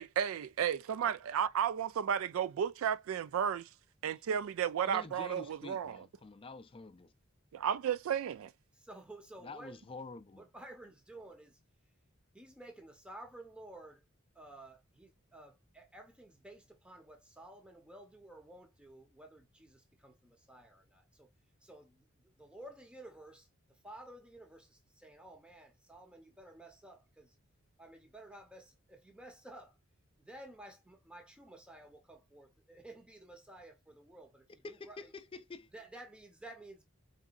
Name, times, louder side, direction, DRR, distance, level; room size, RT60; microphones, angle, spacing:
voice 1, 0.0-3.7 4.0-6.1 7.5-8.5, right 8 dB, 75° right, 0.3 m, -33 dB
voice 2, 4.8-7.1 9.4-10.4 34.6-35.7, left 3 dB, 25° left, 0.4 m, -47 dB
voice 3, 8.9-9.7 10.3-11.6 12.3-14.0 14.3-21.3 21.6-22.0 22.4-23.5 23.8-27.3 27.8-29.8 30.2-35.0 35.7-36.9, right 1 dB, 5° right, 0.7 m, -53 dB
4.0 x 3.7 x 2.4 m
head